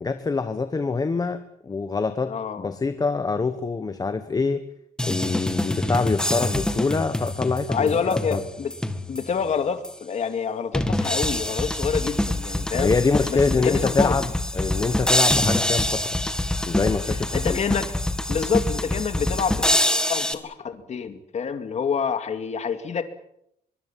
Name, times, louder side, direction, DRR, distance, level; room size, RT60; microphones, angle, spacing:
voice 1, 0.0-4.6 5.0-8.4 12.7-16.1 16.7-17.6, left 4 dB, 25° left, 9 dB, 1.3 m, -25 dB
voice 2, 2.3-2.7 7.7-8.7 9.1-12.9 13.3-14.2 17.3-17.9 18.3-19.8 20.1-23.0, left 6 dB, 45° left, 8 dB, 2.6 m, -27 dB
sound 1, 5.0-9.4 9.8-9.9 10.7-20.3, left 1 dB, 5° left, 1.9 m, -25 dB
24.5 x 22.5 x 7.6 m, 0.75 s
cardioid pair, 150°, 16 cm